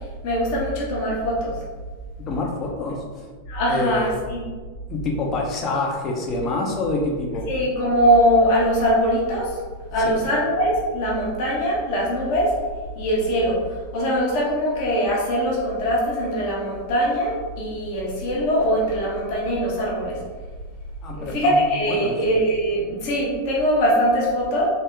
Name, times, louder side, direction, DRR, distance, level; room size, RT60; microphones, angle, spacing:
voice 1, 0.2-1.5 3.5-4.4 7.5-9.5 9.9-12.5 13.0-13.6 13.9-20.2 21.2-24.6, equal, 45° left, -4 dB, 1.1 m, -22 dB
voice 2, 2.3-3.3 3.7-4.1 4.9-7.5 10.0-10.3 21.0-21.6 21.9-22.2, left 2 dB, 30° left, 0 dB, 0.7 m, -26 dB
3.6 x 2.8 x 3.4 m, 1.4 s
figure-of-eight pair, 90°, 0 cm